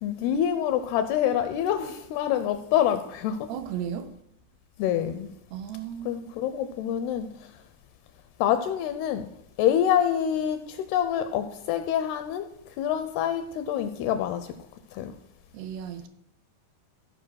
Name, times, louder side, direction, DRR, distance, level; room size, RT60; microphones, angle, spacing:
voice 1, 0.0-3.5 4.8-5.3 6.0-7.3 8.4-9.3 9.6-12.5 12.8-14.5 14.9-15.1, left 10 dB, 80° left, 2.3 m, -26 dB
voice 2, 3.5-4.1 5.5-6.3 15.5-16.1, right 9 dB, 80° right, 2.5 m, -35 dB
15.0 x 5.1 x 6.3 m
omnidirectional pair, 5.0 m